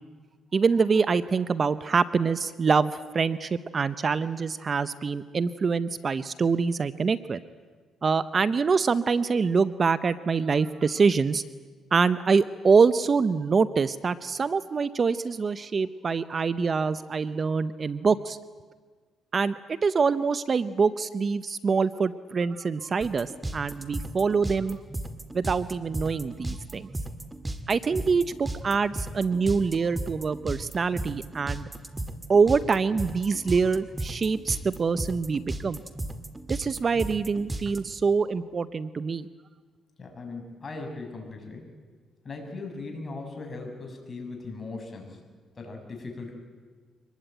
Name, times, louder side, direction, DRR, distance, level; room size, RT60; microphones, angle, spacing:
voice 1, 0.5-7.4 8.0-11.4 11.9-18.4 19.3-24.8 25.3-26.9 27.7-31.7 32.3-35.8 36.5-39.3, right 5 dB, 40° right, 14 dB, 0.8 m, -25 dB
sound 1, 23.0-37.8, right 2 dB, 15° right, 2.0 m, -34 dB
voice 2, 40.0-41.7 42.3-45.2 45.6-46.3, left 3 dB, 30° left, 2 dB, 6.9 m, -38 dB
25.0 x 20.5 x 9.1 m, 1.5 s
cardioid pair, 90°, 0 cm